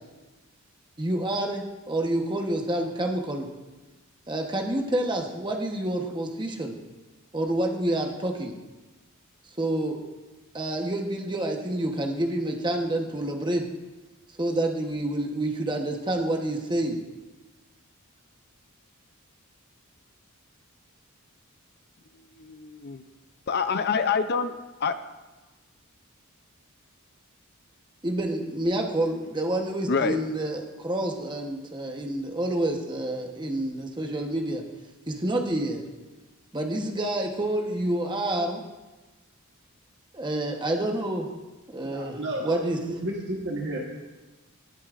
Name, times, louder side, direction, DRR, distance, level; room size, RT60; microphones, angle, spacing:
voice 1, 1.0-3.5 4.3-6.8 7.3-8.5 9.6-10.0 10.5-13.6 14.4-17.0 28.0-34.6 35.1-35.8 36.5-38.6 40.1-41.3 41.7-42.8, right 1 dB, 20° right, 2 dB, 1.0 m, -28 dB
voice 2, 22.4-23.0 23.5-24.5 24.8-24.9 29.9-30.2, left 5 dB, 50° left, 10 dB, 0.5 m, -26 dB
voice 3, 41.8-43.8, right 1 dB, 55° right, -2 dB, 1.4 m, -32 dB
18.5 x 8.3 x 2.5 m, 1.2 s
head